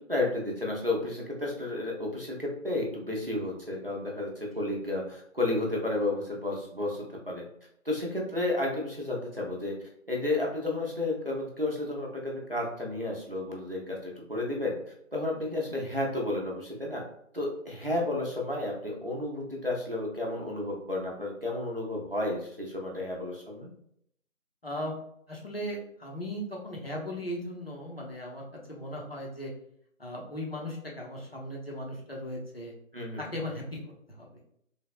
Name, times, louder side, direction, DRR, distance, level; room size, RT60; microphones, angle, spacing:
voice 1, 0.1-7.4 7.8-9.8 10.1-14.8 15.1-17.0 17.3-23.7 32.9-33.4, left 2 dB, 45° right, -2 dB, 0.6 m, -32 dB
voice 2, 24.6-25.0 25.3-29.5 30.0-32.7 33.2-33.8 34.1-34.3, equal, 45° left, -3 dB, 0.7 m, -37 dB
3.3 x 2.1 x 2.3 m, 0.71 s
figure-of-eight pair, 175°, 41 cm